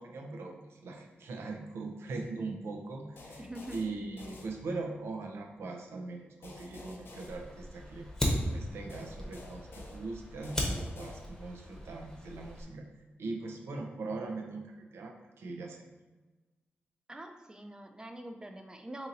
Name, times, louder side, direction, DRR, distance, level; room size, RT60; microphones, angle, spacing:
voice 1, 0.0-3.4 3.7-8.1 8.5-12.9 13.2-15.9, right 3 dB, 90° right, 2 dB, 0.5 m, -40 dB
sound 1, 3.2-5.1 6.4-8.2 8.9-11.7, left 3 dB, 65° left, 0.5 m, -51 dB
voice 2, 3.4-4.0 17.1-19.1, right 1 dB, 20° right, 5 dB, 0.4 m, -44 dB
Fire, 7.3-12.6, equal, 15° left, 0.8 m, -37 dB
2.7 x 2.7 x 4.0 m, 1.2 s
wide cardioid pair, 90°, 4 cm